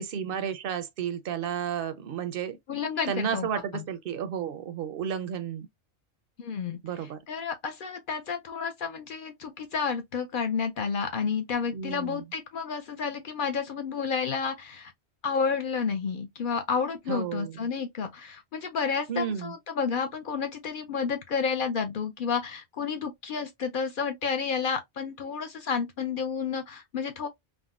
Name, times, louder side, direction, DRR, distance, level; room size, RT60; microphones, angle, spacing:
voice 1, 0.0-2.6 3.1-5.7 6.8-7.2 11.7-12.2 17.1-17.7 19.1-19.5, right 8 dB, 65° right, 0.7 m, -32 dB
voice 2, 2.7-3.5 3.7-3.8 6.4-6.8 7.3-14.9 15.2-27.3, left 6 dB, 60° left, 0.6 m, -30 dB
3.5 x 2.1 x 2.3 m
omnidirectional pair, 1.2 m